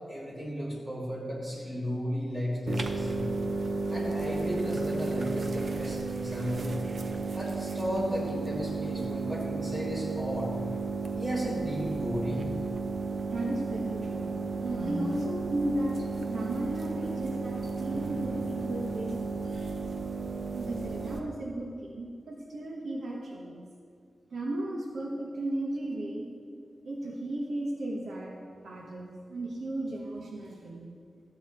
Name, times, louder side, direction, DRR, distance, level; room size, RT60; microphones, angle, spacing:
voice 1, 0.1-3.3 3.9-6.8 7.3-10.6 11.1-12.5, equal, 25° right, -6 dB, 2.7 m, -34 dB
sound 1, 2.7-21.2, right 4 dB, 50° right, 0.7 m, -33 dB
voice 2, 13.2-19.8 20.5-23.6 24.3-26.3 26.8-30.9, right 1 dB, 75° right, -1 dB, 1.2 m, -35 dB
13.5 x 8.1 x 4.4 m, 2.3 s
wide cardioid pair, 170°, 0 cm